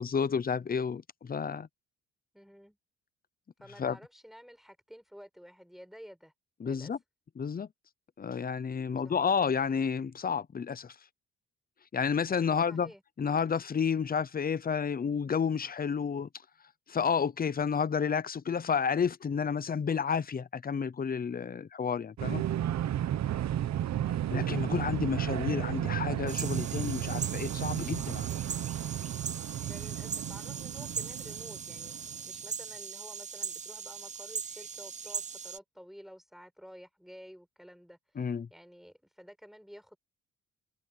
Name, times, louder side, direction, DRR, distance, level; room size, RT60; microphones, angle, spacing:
voice 1, 0.0-1.7 3.8-4.0 6.6-7.0 7.4-7.7 8.2-10.9 11.9-12.9 13.2-16.3 16.9-22.4 24.3-28.3 38.2-38.5, left 6 dB, 30° left, 0.8 m, -30 dB
voice 2, 2.3-2.8 3.6-6.3 6.6-6.9 9.0-9.3 12.7-13.0 29.6-40.0, equal, ahead, 6.0 m, -52 dB
sound 1, 22.2-32.2, right 11 dB, 60° right, 1.0 m, -33 dB
sound 2, 26.3-35.6, right 6 dB, 25° right, 0.5 m, -40 dB
cardioid pair, 90°, 30 cm